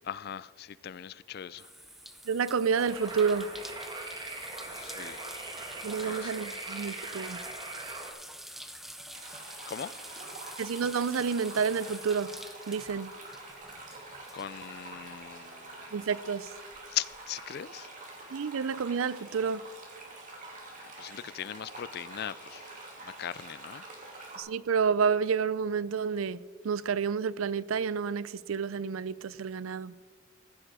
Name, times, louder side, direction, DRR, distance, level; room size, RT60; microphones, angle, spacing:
voice 1, 0.0-1.7 4.6-5.2 6.0-6.3 9.7-10.0 14.3-16.0 16.9-17.9 20.8-23.8, left 10 dB, 50° left, 0.3 m, -39 dB
sound 1, 1.6-15.6 15.9-17.2, equal, ahead, 0.5 m, -47 dB
voice 2, 2.3-3.5 5.8-7.4 10.6-12.3 12.7-13.1 15.9-16.5 18.3-19.7 24.4-29.9, right 6 dB, 90° right, 0.5 m, -29 dB
sound 2, 2.8-8.1, right 2 dB, 20° right, 1.6 m, -41 dB
sound 3, 9.1-24.4, right 2 dB, 40° right, 2.8 m, -46 dB
15.0 x 9.9 x 4.9 m
head